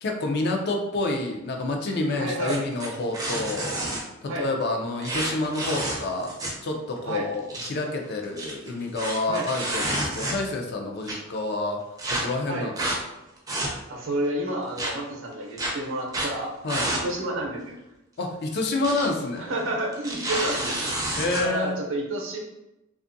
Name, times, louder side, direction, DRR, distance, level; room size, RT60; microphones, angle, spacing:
voice 1, 0.0-3.8 4.2-6.3 6.6-11.8 12.1-12.7 16.6-16.9 18.2-19.5 21.2-21.8, left 2 dB, 55° left, 2 dB, 0.4 m, -28 dB
voice 2, 2.2-2.8 4.3-4.5 7.0-7.3 9.3-9.5 12.4-12.7 13.9-17.7 19.4-20.9 21.2-22.4, right 1 dB, 70° right, -1 dB, 0.6 m, -30 dB
sound 1, 2.5-4.0 5.0-6.7 7.0-7.1 7.3-7.7 8.2-10.6 11.1-11.2 12.0-12.2 12.8-13.0 13.4-14.0 14.8-14.9 15.6-15.7 16.1-16.3 16.7-17.0 17.4-17.5 18.5-19.1 19.4-19.5 19.9-21.4, right 1 dB, 20° right, 0.4 m, -29 dB
2.5 x 2.4 x 2.5 m, 0.94 s
head